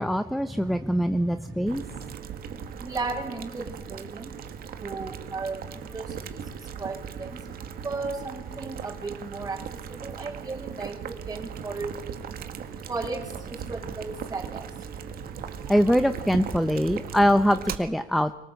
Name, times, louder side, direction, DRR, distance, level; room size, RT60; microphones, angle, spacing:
voice 1, 0.0-1.8 15.7-18.3, equal, ahead, 10 dB, 0.9 m, -23 dB
Boiling, 1.7-17.7, right 7 dB, 60° right, 2.1 m, -38 dB
voice 2, 2.8-4.3 4.8-6.4 6.8-7.4 7.8-9.6 9.9-12.0 12.9-14.7, right 3 dB, 20° right, 1 dB, 6.0 m, -35 dB
24.5 x 18.5 x 8.2 m, 1.1 s
cardioid pair, 110°, 17 cm